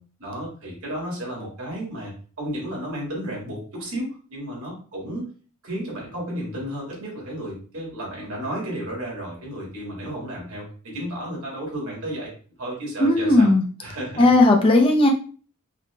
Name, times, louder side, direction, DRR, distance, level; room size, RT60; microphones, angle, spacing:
voice 1, 0.2-2.1 2.4-5.3 5.6-12.3 12.6-13.5 13.8-14.3, right 1 dB, 80° right, -3 dB, 2.1 m, -32 dB
voice 2, 13.0-13.6 14.2-15.1, left 2 dB, 25° left, 2 dB, 0.6 m, -16 dB
4.9 x 2.3 x 3.3 m, 0.40 s
head